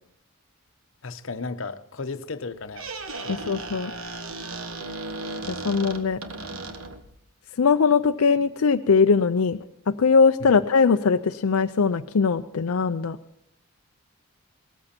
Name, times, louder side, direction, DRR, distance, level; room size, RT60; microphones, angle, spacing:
voice 1, 1.0-2.9 3.2-3.5 10.4-10.5, left 4 dB, 65° left, 10 dB, 0.9 m, -35 dB
Squeak, 2.5-7.2, right 2 dB, 75° right, 1.4 m, -35 dB
voice 2, 3.3-3.9 5.5-6.2 7.6-9.6 9.9-13.2, left 5 dB, 90° left, 7 dB, 0.5 m, -21 dB
18.5 x 14.0 x 4.4 m, 0.75 s
head